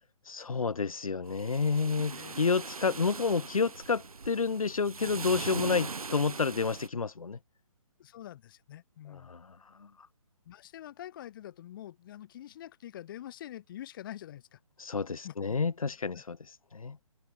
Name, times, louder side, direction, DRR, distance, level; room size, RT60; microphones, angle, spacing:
voice 1, 0.3-7.4 9.1-9.9 14.8-16.4 16.7-17.0, left 5 dB, 75° left, 4.4 m, -30 dB
sound 1, 1.2-6.9, right 4 dB, 85° right, 1.5 m, -40 dB
voice 2, 2.1-2.4 8.0-9.3 10.5-14.6 15.2-15.3, left 12 dB, 35° left, 2.7 m, -45 dB
hypercardioid pair, 150°, 18 cm